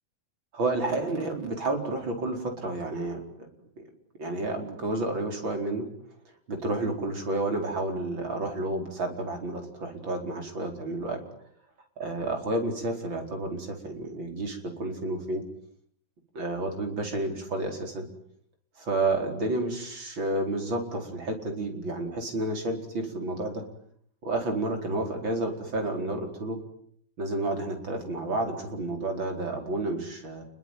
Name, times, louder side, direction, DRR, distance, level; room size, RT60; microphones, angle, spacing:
voice 1, 0.5-3.5 3.8-3.9 4.2-5.9 6.5-11.2 12.0-15.4 16.3-18.1 18.8-23.6 24.2-26.6 27.2-30.5, right 2 dB, 85° right, 4 dB, 5.4 m, -30 dB
28.5 x 22.0 x 9.3 m, 0.66 s
omnidirectional pair, 2.1 m